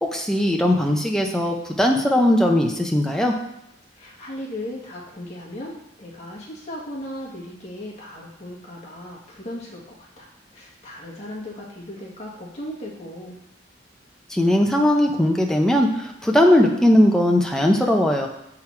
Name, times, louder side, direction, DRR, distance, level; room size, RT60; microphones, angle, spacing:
voice 1, 0.0-3.3 14.3-18.3, left 1 dB, 5° left, 1 dB, 0.6 m, -19 dB
voice 2, 3.9-10.3 10.5-13.4, left 1 dB, 35° left, -4 dB, 1.6 m, -37 dB
7.3 x 4.0 x 4.3 m, 0.83 s
head